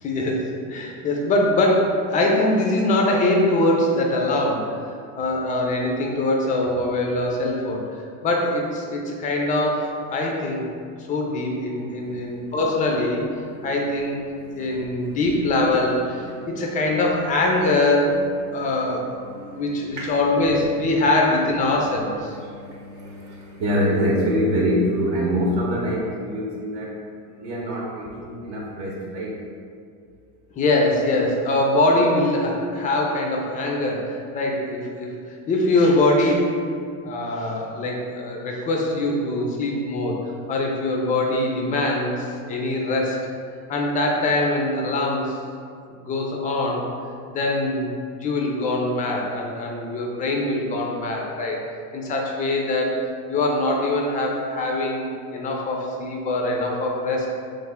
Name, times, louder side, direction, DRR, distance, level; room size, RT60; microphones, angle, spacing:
voice 1, 0.0-4.8 5.2-8.0 8.2-10.7 11.1-13.2 13.6-14.2 14.6-18.2 18.5-22.3 30.5-36.6 37.0-43.2 43.7-45.4 45.9-46.9 47.3-47.9 48.2-51.6 51.9-57.3, left 2 dB, 20° left, 0 dB, 0.3 m, -23 dB
voice 2, 12.0-12.5 13.5-13.7 14.4-14.9 16.3-16.6 18.5-19.6 19.9-20.2 22.3-27.0 27.4-29.4, equal, 60° right, -4 dB, 0.8 m, -26 dB
3.3 x 2.1 x 3.4 m, 2.3 s
supercardioid pair, 105°, 46 cm